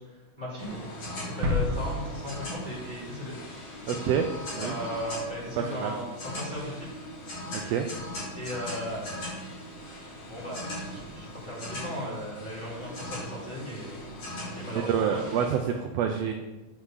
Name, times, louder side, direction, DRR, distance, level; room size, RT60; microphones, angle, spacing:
voice 1, 0.4-0.8 1.2-3.3 4.6-6.9 8.3-9.3 10.2-14.0 14.5-15.3, equal, 15° left, -6 dB, 2.0 m, -37 dB
sound 1, 0.6-15.6, left 1 dB, 55° left, 3.6 m, -39 dB
sound 2, 1.4-3.3 3.5-3.6, left 2 dB, 60° right, 1.8 m, -31 dB
voice 2, 3.9-4.3 4.5-4.8 5.6-6.0 7.5-7.9 14.7-16.3, right 8 dB, 85° right, 4 dB, 1.4 m, -27 dB
8.4 x 3.8 x 6.3 m, 1.1 s
omnidirectional pair, 3.5 m